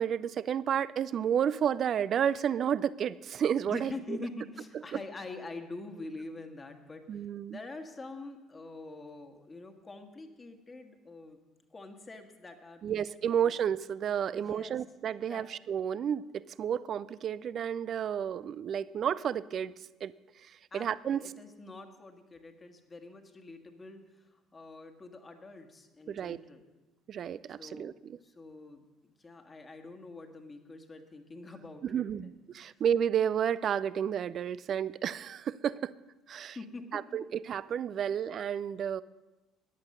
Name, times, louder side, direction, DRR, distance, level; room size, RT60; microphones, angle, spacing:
voice 1, 0.0-3.9 7.1-7.6 12.8-19.7 20.0-20.1 20.7-21.2 26.1-26.4 27.1-28.2 31.8-35.9 36.3-36.6 36.9-39.0, right 8 dB, 45° right, 19 dB, 0.4 m, -31 dB
voice 2, 3.7-11.4 11.7-13.5 14.3-14.8 15.3-15.5 20.7-26.7 27.6-32.3 36.5-36.8, left 3 dB, 25° left, 4 dB, 1.6 m, -45 dB
14.5 x 10.5 x 5.4 m, 1.1 s
figure-of-eight pair, 55°, 0 cm